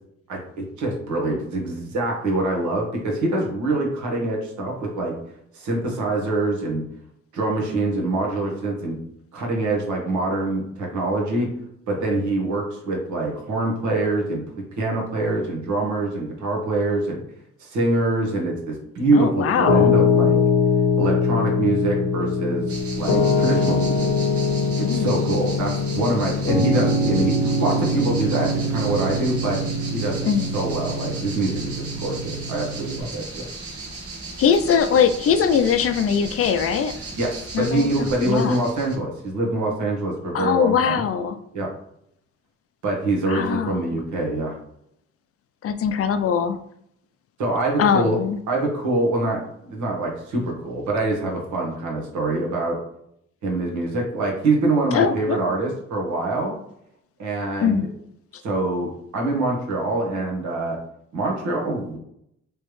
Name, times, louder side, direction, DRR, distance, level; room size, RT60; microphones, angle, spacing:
voice 1, 0.3-5.1 5.5-6.8 7.3-9.0 9.3-11.5 11.9-14.4 14.8-17.2 17.6-20.4 21.0-24.1 24.9-29.6 29.9-33.5 37.2-41.0 41.5-41.7 42.8-44.6 47.4-48.2 48.5-52.8 53.4-56.5 57.2-57.9 58.4-60.8 61.1-62.0, right 2 dB, 75° right, -1 dB, 1.4 m, -25 dB
voice 2, 19.1-19.9 24.8-25.2 30.2-30.6 34.4-36.9 37.5-38.6 40.3-41.4 43.3-43.9 45.6-46.6 47.8-48.4 54.9-55.4 57.6-57.9, left 7 dB, 50° left, 11 dB, 0.4 m, -21 dB
Piano, 19.7-33.0, left 3 dB, 80° left, 0.8 m, -22 dB
sound 1, 22.7-39.0, right 2 dB, 50° right, 1.2 m, -37 dB
3.5 x 3.2 x 3.1 m, 0.74 s
cardioid pair, 90°, 30 cm